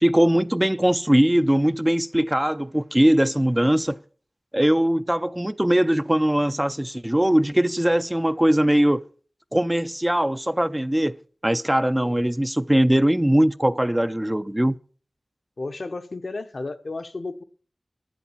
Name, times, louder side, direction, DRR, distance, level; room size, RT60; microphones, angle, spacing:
voice 1, 0.0-4.0 4.5-9.0 9.5-11.2 11.4-14.8, right 1 dB, 15° right, 0.5 m, -20 dB
voice 2, 15.6-17.4, left 3 dB, 65° left, 0.9 m, -33 dB
11.0 x 7.2 x 7.1 m
wide cardioid pair, 60°, 0 cm